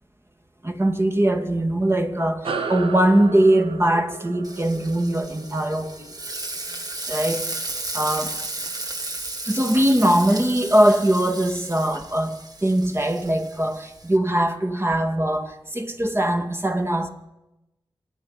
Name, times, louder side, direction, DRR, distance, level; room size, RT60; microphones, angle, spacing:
voice 1, 0.6-6.1 7.1-7.5 7.9-8.4 9.5-17.1, right 1 dB, 25° right, 2.1 m, -21 dB
sound 1, 2.4-7.3, right 4 dB, 75° right, 1.5 m, -34 dB
Frying (food), 4.4-14.2, right 2 dB, 40° right, 2.2 m, -34 dB
26.5 x 9.9 x 5.5 m
cardioid pair, 45°, 9 cm